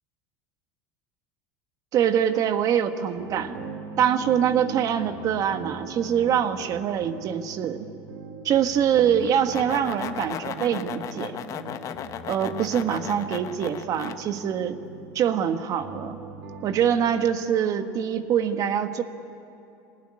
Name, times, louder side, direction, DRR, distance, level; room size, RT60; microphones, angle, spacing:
voice 1, 1.9-3.6 4.0-7.9 8.4-11.3 12.3-14.8 15.1-16.2 16.6-19.0, right 9 dB, 40° right, 8 dB, 1.5 m, -24 dB
sound 1, 3.2-17.4, right 4 dB, 80° right, 2.3 m, -41 dB
sound 2, 9.2-14.2, left 9 dB, 35° left, 1.1 m, -35 dB
24.5 x 19.0 x 9.9 m, 2.7 s
supercardioid pair, 140°, 9 cm